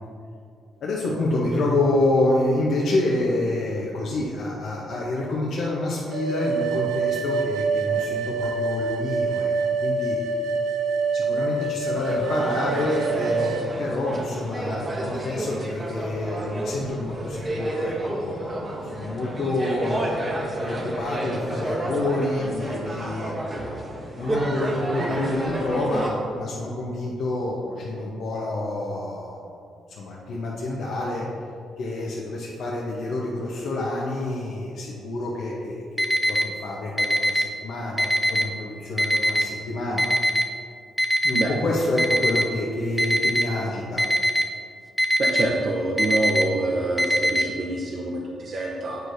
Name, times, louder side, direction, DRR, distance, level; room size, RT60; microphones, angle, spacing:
voice 1, 0.8-9.5 9.8-10.2 11.1-20.0 20.6-23.3 23.9-29.4 29.9-31.2 31.8-40.0 41.2-44.0, left 2 dB, 65° left, -4 dB, 0.8 m, -27 dB
sound 1, 6.1-13.7, right 4 dB, 85° right, 0.4 m, -26 dB
sound 2, 11.9-26.1, right 1 dB, 30° right, 0.9 m, -30 dB
Alarm, 36.0-36.4 37.0-37.4 38.0-38.4 39.0-39.4 40.0-40.4 41.0-41.4 42.0-42.4 43.0-43.4 44.0-44.4 45.0-45.4 46.0-46.4 47.0-47.4, equal, 5° left, 0.5 m, -20 dB
voice 2, 45.2-49.0, right 2 dB, 50° right, -2 dB, 0.7 m, -26 dB
8.0 x 4.7 x 2.6 m, 2.4 s
cardioid pair, 90°, 0 cm